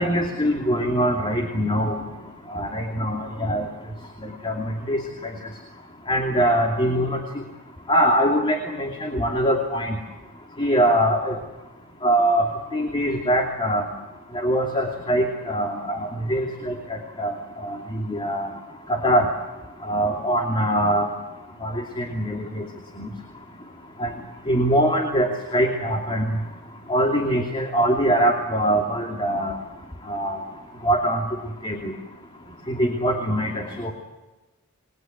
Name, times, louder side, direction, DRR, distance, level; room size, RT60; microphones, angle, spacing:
voice 1, 0.0-2.0 2.5-3.6 4.4-5.0 6.1-7.2 7.9-10.0 10.6-11.4 12.0-12.5 12.7-13.9 14.3-17.4 17.6-18.5 18.9-19.3 19.9-21.1 21.6-22.6 23.0-23.1 24.0-24.1 24.5-26.3 26.9-29.5 30.1-30.4 30.8-31.2 31.6-31.9 32.7-33.9, equal, 25° left, 2 dB, 2.8 m, -23 dB
29.0 x 21.5 x 8.0 m, 1.1 s
head